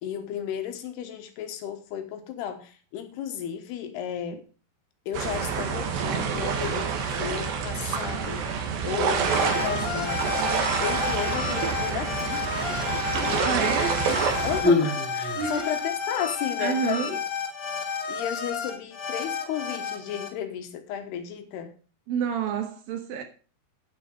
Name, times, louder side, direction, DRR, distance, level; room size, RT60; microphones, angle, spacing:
voice 1, 0.0-4.4 5.1-8.4 8.8-10.3 10.8-12.5 13.1-13.8 14.4-17.2 17.9-21.7, left 9 dB, 80° left, 3.2 m, -34 dB
sound 1, 5.1-14.6, right 6 dB, 90° right, 3.9 m, -27 dB
sound 2, 9.2-20.3, left 6 dB, 55° left, 2.1 m, -32 dB
Human voice, 12.2-13.1 14.0-15.9 16.8-17.0, left 2 dB, 5° left, 2.1 m, -28 dB
voice 2, 13.4-14.0 15.4-15.7 16.6-17.2 22.1-23.2, right 8 dB, 70° right, 2.5 m, -29 dB
9.5 x 7.7 x 5.3 m
omnidirectional pair, 4.8 m